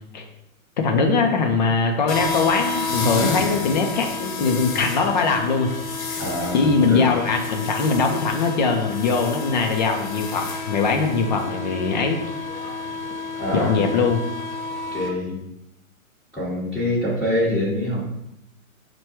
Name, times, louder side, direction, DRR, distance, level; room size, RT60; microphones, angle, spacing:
voice 1, 0.8-5.7 6.1-6.2 6.5-12.2 12.9-13.0 13.5-14.2, left 4 dB, 35° left, 3 dB, 0.4 m, -21 dB
sound 1, 2.1-15.1, left 3 dB, 65° left, 0.9 m, -30 dB
voice 2, 3.2-3.5 6.2-7.1 13.4-13.9 14.9-15.4 16.3-18.0, left 1 dB, ahead, -14 dB, 1.0 m, -25 dB
4.4 x 2.2 x 4.3 m, 0.82 s
hypercardioid pair, 140°, 43 cm